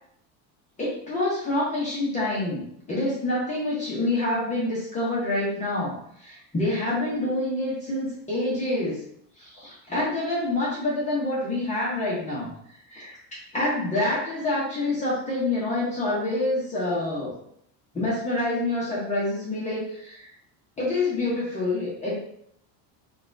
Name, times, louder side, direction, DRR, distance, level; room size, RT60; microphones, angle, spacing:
voice 1, 0.8-9.0 9.4-12.5 12.9-13.2 13.5-17.3 17.9-20.3 20.8-22.1, left 2 dB, 15° left, -8 dB, 0.8 m, -27 dB
4.0 x 2.4 x 2.5 m, 0.70 s
cardioid pair, 170°, 45 cm